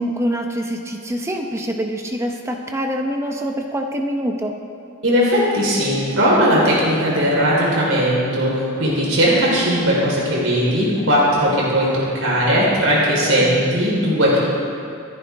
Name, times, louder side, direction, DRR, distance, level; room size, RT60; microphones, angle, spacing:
voice 1, 0.0-4.5 13.4-13.6, equal, 15° right, 3 dB, 0.9 m, -25 dB
voice 2, 5.0-14.4, equal, 70° right, -5 dB, 4.3 m, -18 dB
28.0 x 10.5 x 3.6 m, 2.4 s
head